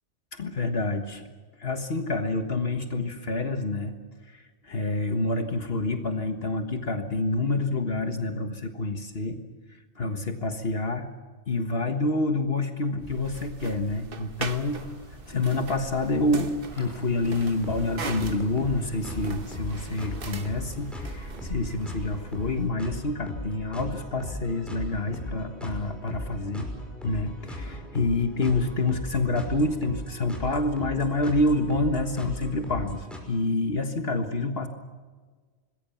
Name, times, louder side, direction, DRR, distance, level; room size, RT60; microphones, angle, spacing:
voice 1, 0.3-1.3 1.6-3.9 4.3-9.4 9.7-11.1 11.5-14.8 15.3-26.7 27.0-34.7, left 2 dB, 60° left, 5 dB, 1.8 m, -27 dB
sound 1, 13.0-22.7, right 4 dB, 55° right, 1.4 m, -40 dB
sound 2, 14.3-21.1, left 1 dB, 25° right, 6.8 m, -49 dB
sound 3, 17.6-33.2, left 1 dB, ahead, 5.9 m, -38 dB
26.5 x 20.5 x 7.2 m, 1.4 s
omnidirectional pair, 1.1 m